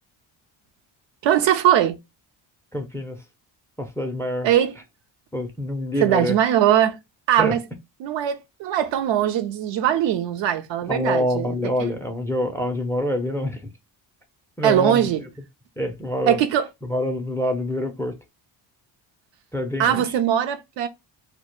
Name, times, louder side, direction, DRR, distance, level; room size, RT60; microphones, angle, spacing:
voice 1, 1.2-2.0 4.4-4.8 6.0-7.0 7.3-7.6 8.0-11.6 11.8-11.9 14.6-15.2 16.3-16.7 19.8-20.9, right 10 dB, 70° right, 0.6 m, -20 dB
voice 2, 2.7-3.2 3.8-4.5 5.3-6.4 7.4-7.6 10.9-13.7 14.6-15.1 15.8-16.4 16.8-18.2 19.5-20.0, left 1 dB, 5° left, 0.4 m, -26 dB
2.2 x 2.1 x 2.9 m
cardioid pair, 80°, 47 cm